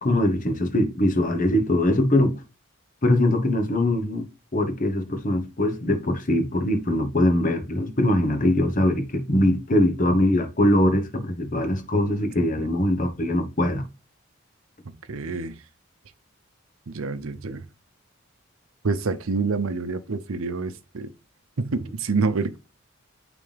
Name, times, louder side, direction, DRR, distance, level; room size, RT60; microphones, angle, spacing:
voice 1, 0.0-2.4 3.0-4.3 4.5-13.8, left 1 dB, 40° left, 1.1 m, -22 dB
voice 2, 15.1-15.6 16.9-17.6 18.8-21.1 21.6-22.6, right 4 dB, 80° right, 0.7 m, -27 dB
9.0 x 3.4 x 3.4 m
head